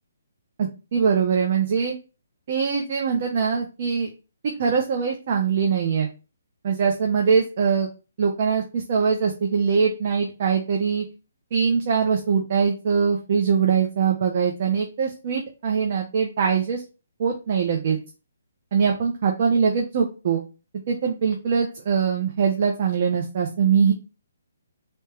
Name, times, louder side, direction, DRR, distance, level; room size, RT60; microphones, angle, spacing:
voice 1, 0.6-1.9 2.5-4.1 4.4-6.1 6.6-7.9 8.2-11.0 11.5-16.8 17.2-18.0 18.7-20.4 20.9-23.9, right 6 dB, 50° right, 1 dB, 0.7 m, -22 dB
3.3 x 3.0 x 2.9 m, 0.30 s
figure-of-eight pair, 140°, 0 cm